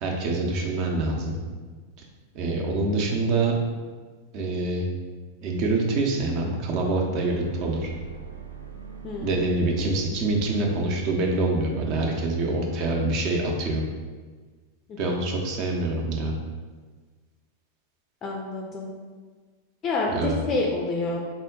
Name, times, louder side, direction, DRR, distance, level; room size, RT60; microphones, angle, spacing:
voice 1, 0.0-1.4 2.3-3.5 4.3-4.9 5.4-7.9 9.2-13.9 15.0-16.3 20.1-20.4, right 2 dB, 40° right, 0 dB, 0.6 m, -25 dB
sound 1, 7.3-12.2, right 6 dB, 80° right, 0.4 m, -43 dB
voice 2, 9.0-9.5 14.9-15.2 18.2-18.9 19.8-21.2, left 3 dB, 30° left, -1 dB, 0.4 m, -28 dB
3.4 x 2.1 x 3.8 m, 1.4 s
figure-of-eight pair, 90°, 0 cm